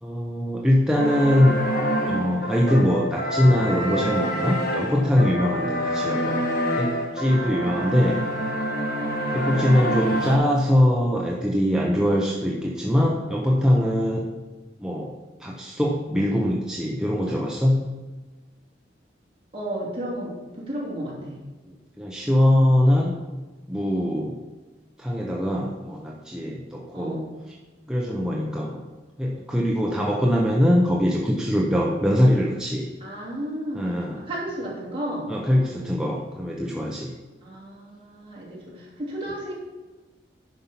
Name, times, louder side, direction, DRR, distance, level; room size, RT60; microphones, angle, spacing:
voice 1, 0.0-1.6 2.1-6.4 6.7-8.2 9.3-14.3 14.8-17.9 21.7-23.1 23.7-24.4 25.0-27.2 27.9-28.8 29.2-32.9 33.7-34.3 35.3-37.1, left 1 dB, 5° right, -2 dB, 0.7 m, -22 dB
sound 1, 0.9-10.4, equal, 50° left, 1.5 m, -27 dB
voice 2, 7.6-8.0 9.4-9.8 19.5-21.3 26.9-27.2 33.0-35.3 37.4-39.5, right 1 dB, 30° right, -5 dB, 3.0 m, -33 dB
10.0 x 5.4 x 5.7 m, 1.2 s
head